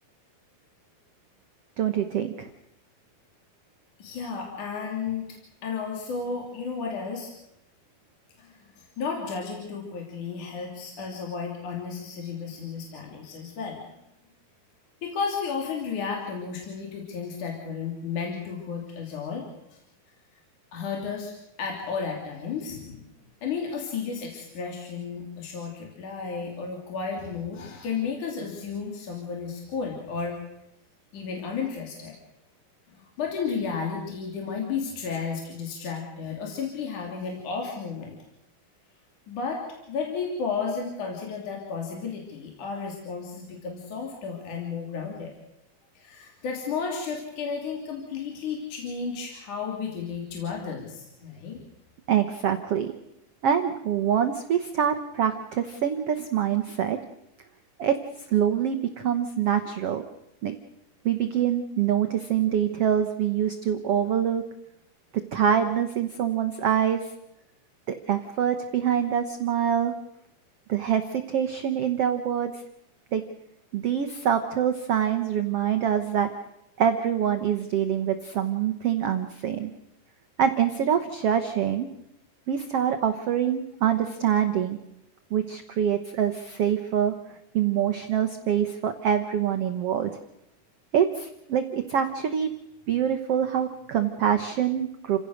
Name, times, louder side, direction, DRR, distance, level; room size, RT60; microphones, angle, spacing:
voice 1, 1.8-2.5 52.1-52.9 53.4-57.0 57.8-58.0 58.3-60.0 60.4-60.6 61.0-64.4 65.1-67.1 67.9-69.9 70.7-72.6 73.1-73.2 73.7-76.3 76.8-79.7 80.4-81.9 82.5-84.8 85.3-87.1 87.5-90.1 90.9-92.5 92.9-95.2, right 9 dB, 85° right, 7 dB, 1.3 m, -25 dB
voice 2, 4.0-5.3 5.6-7.3 8.4-13.8 15.0-19.8 20.7-23.1 23.4-30.4 31.1-32.2 32.9-38.2 39.3-45.3 46.0-51.6, left 5 dB, 55° left, 0 dB, 4.3 m, -33 dB
29.5 x 16.5 x 6.5 m, 0.84 s
omnidirectional pair, 4.4 m